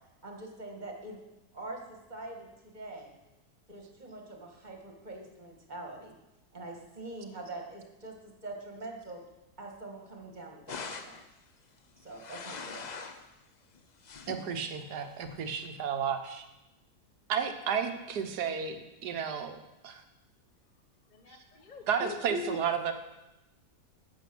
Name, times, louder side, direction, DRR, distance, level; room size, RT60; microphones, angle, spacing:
voice 1, 0.2-1.2 1.5-3.2 3.7-6.1 6.5-9.2 9.6-11.2 12.0-12.9, right 2 dB, 30° right, 1 dB, 1.8 m, -44 dB
sound 1, 10.7-11.3 12.0-13.3 13.8-14.5 15.2-15.7, left 5 dB, 55° left, 0.5 m, -43 dB
voice 2, 14.3-16.4 17.3-19.6 19.8-20.0 21.3-21.4 21.9-22.9, right 7 dB, 85° right, 7 dB, 1.6 m, -32 dB
voice 3, 21.1-22.6, left 1 dB, 35° left, 5 dB, 1.0 m, -40 dB
11.5 x 7.3 x 6.1 m, 0.97 s
omnidirectional pair, 1.7 m